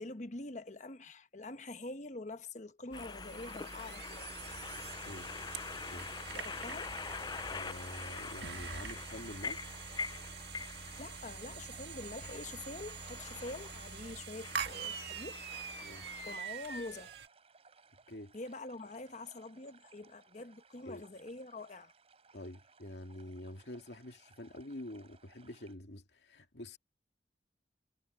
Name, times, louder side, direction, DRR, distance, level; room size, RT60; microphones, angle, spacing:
voice 1, 0.0-4.3 6.3-6.9 11.0-15.4 16.3-17.1 18.3-21.9, left 2 dB, 45° left, 1.1 m, -45 dB
sound 1, 2.9-16.4, left 5 dB, 25° left, 0.4 m, -45 dB
sound 2, 2.9-17.3, right 6 dB, 70° right, 1.9 m, -45 dB
voice 2, 7.5-9.8 15.8-16.1 18.1-18.3 20.9-21.0 22.3-26.8, left 1 dB, 75° left, 2.4 m, -47 dB
sound 3, 11.5-25.7, right 4 dB, 35° right, 3.9 m, -64 dB
head